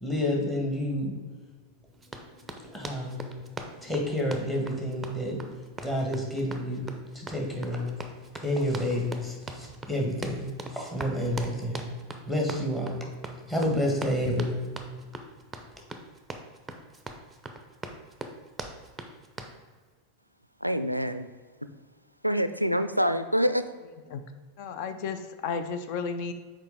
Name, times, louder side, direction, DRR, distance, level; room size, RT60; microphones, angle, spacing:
voice 1, 0.0-1.1 2.6-3.4 3.7-5.4 5.8-6.9 7.1-8.0 8.4-11.9 12.3-13.0 13.5-14.7, left 1 dB, 10° left, -1 dB, 1.5 m, -29 dB
Run, 2.0-19.6, right 2 dB, 10° right, 0.6 m, -41 dB
voice 2, 20.6-21.3 21.6-21.7 22.2-23.7, equal, 90° right, 10 dB, 0.3 m, -26 dB
voice 3, 24.6-26.3, left 5 dB, 45° left, 9 dB, 0.6 m, -33 dB
6.6 x 4.7 x 3.7 m, 1.5 s
figure-of-eight pair, 90°, 0 cm